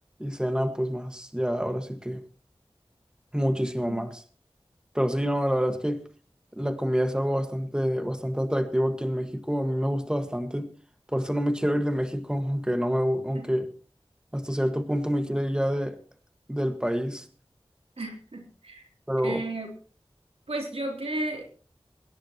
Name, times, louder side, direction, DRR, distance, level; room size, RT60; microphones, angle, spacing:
voice 1, 0.2-2.2 3.3-4.2 4.9-6.0 6.5-10.7 11.1-13.7 14.3-16.0 16.5-17.3 19.1-19.4, equal, 10° right, 7 dB, 1.7 m, -27 dB
voice 2, 18.0-18.8 19.2-19.7 20.5-21.4, right 2 dB, 85° right, 1 dB, 3.2 m, -33 dB
23.5 x 10.5 x 3.0 m, 0.39 s
wide cardioid pair, 40°, 10 cm